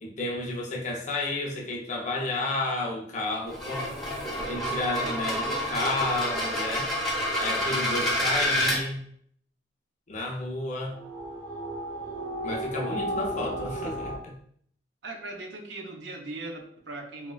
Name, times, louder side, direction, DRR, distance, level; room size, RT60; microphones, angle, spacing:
voice 1, 0.0-3.9 4.3-6.9 7.4-9.0 10.1-11.0 12.4-14.3, left 2 dB, 40° left, 1 dB, 0.5 m, -31 dB
sound 1, 3.5-8.8, equal, ahead, 0.8 m, -28 dB
sound 2, 10.9-14.2, equal, 30° right, 0.7 m, -34 dB
voice 2, 15.0-17.3, right 2 dB, 80° right, 3 dB, 0.6 m, -39 dB
4.0 x 2.1 x 2.3 m, 0.63 s
head